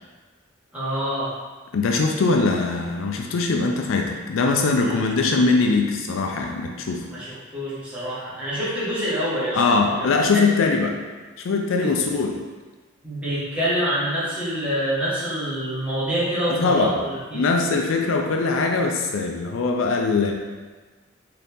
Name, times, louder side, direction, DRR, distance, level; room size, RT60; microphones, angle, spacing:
voice 1, 0.7-1.3 4.7-5.1 7.1-9.6 9.9-10.1 10.3-10.5 11.8-11.9 13.0-17.5, equal, 5° right, -10 dB, 1.3 m, -26 dB
voice 2, 1.7-7.1 9.5-11.0 11.4-12.4 16.4-16.9 17.3-20.3, left 3 dB, 75° left, 2 dB, 0.4 m, -21 dB
3.9 x 2.8 x 3.5 m, 1.3 s
head